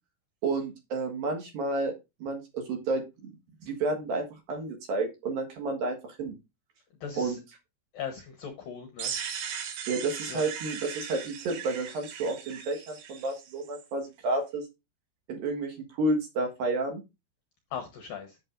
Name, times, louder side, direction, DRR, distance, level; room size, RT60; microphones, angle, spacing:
voice 1, 0.4-3.0 3.6-6.3 7.2-7.4 9.9-14.7 15.3-17.0, right 2 dB, 60° right, 3 dB, 2.9 m, -31 dB
voice 2, 7.0-7.4 7.9-9.1 10.3-10.4 17.7-18.4, left 7 dB, 75° left, 6 dB, 2.1 m, -38 dB
sound 1, 9.0-13.8, right 8 dB, 85° right, 4.2 m, -38 dB
10.5 x 7.9 x 2.5 m, 0.23 s
omnidirectional pair, 5.6 m